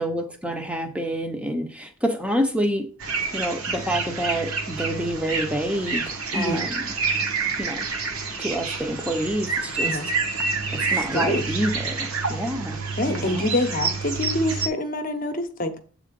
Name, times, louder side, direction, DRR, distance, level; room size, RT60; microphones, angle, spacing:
voice 1, 0.0-2.9 3.3-6.9 7.6-7.9 8.4-9.9 10.7-13.5, equal, 5° right, 5 dB, 0.7 m, -28 dB
sound 1, 3.0-14.7, right 4 dB, 70° right, 1.3 m, -28 dB
voice 2, 6.3-6.6 9.8-10.1 10.9-11.4 13.0-15.8, left 1 dB, 40° left, 7 dB, 0.8 m, -26 dB
8.0 x 3.8 x 5.2 m, 0.43 s
head